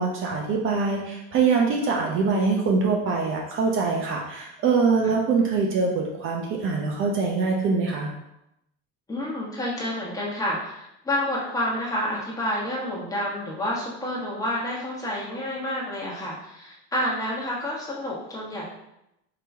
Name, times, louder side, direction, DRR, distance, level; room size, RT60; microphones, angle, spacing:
voice 1, 0.0-8.1, right 4 dB, 40° right, 0 dB, 0.7 m, -23 dB
voice 2, 9.1-18.7, left 1 dB, 10° left, -5 dB, 1.2 m, -29 dB
4.9 x 3.0 x 3.5 m, 0.85 s
cardioid pair, 140°, 31 cm